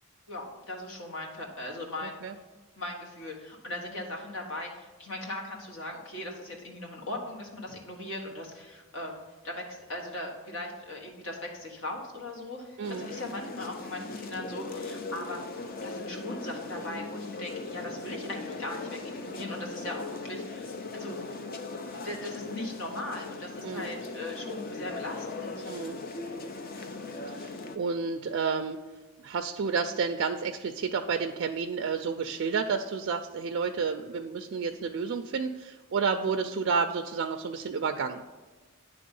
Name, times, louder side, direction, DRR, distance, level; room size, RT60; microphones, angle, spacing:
voice 1, 0.3-2.2 2.8-15.4 15.8-21.3 21.9-25.7, left 1 dB, 60° left, 0 dB, 1.4 m, -39 dB
sound 1, 12.8-27.8, left 3 dB, 40° left, 0.5 m, -39 dB
voice 2, 25.7-26.0 27.4-27.5 27.8-28.8 29.2-38.2, right 5 dB, 55° right, 6 dB, 0.3 m, -30 dB
9.4 x 3.4 x 5.3 m, 1.3 s
head